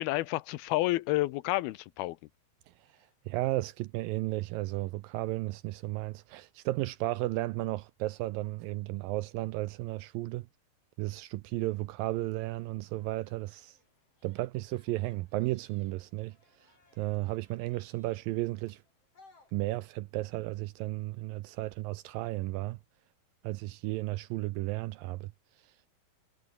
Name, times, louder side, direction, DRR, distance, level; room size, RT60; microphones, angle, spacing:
voice 1, 0.0-2.2, left 17 dB, 85° left, 2.6 m, -30 dB
voice 2, 3.3-10.5 11.0-13.8 14.2-16.4 17.0-18.8 19.5-22.8 23.4-25.3, right 18 dB, 80° right, 2.1 m, -34 dB
sound 1, 12.0-19.9, left 3 dB, 35° left, 7.7 m, -66 dB
omnidirectional pair, 4.5 m